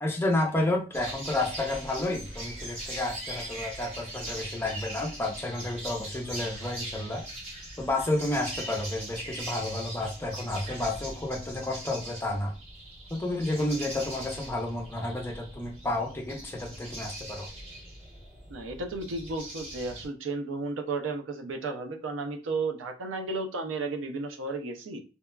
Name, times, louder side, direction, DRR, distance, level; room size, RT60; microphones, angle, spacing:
voice 1, 0.0-7.2 7.8-12.5 13.1-17.5, left 2 dB, 10° left, 1 dB, 0.4 m, -31 dB
sound 1, 0.9-20.1, right 1 dB, 35° right, 0.9 m, -41 dB
voice 2, 18.5-25.0, right 3 dB, 90° right, 5 dB, 0.5 m, -33 dB
2.8 x 2.2 x 2.2 m, 0.34 s
head